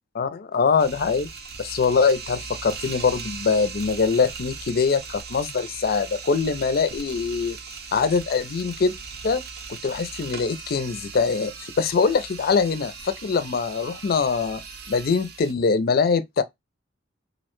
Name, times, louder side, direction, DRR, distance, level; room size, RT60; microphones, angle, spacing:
voice 1, 0.2-1.3 1.6-7.6 7.9-9.0 9.2-9.4 9.8-14.6 14.9-16.4, left 5 dB, 50° left, 0.4 m, -23 dB
sound 1, 0.8-15.5, right 5 dB, 55° right, 0.5 m, -39 dB
2.6 x 2.1 x 2.9 m
head